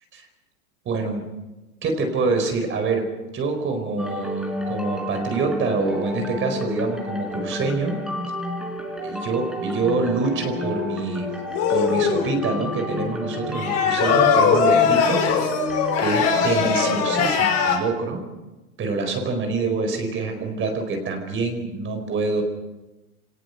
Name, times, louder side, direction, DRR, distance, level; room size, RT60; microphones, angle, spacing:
voice 1, 0.8-1.2 1.8-3.1 3.3-8.0 9.0-11.3 11.7-15.5 16.0-18.2 18.8-22.4, right 3 dB, 25° right, 5 dB, 4.5 m, -26 dB
sound 1, 4.0-17.3, left 2 dB, ahead, 4.3 m, -31 dB
sound 2, 11.5-12.3 13.6-17.8, left 6 dB, 35° left, 5.7 m, -20 dB
25.0 x 18.5 x 6.6 m, 1.1 s
supercardioid pair, 130°, 43 cm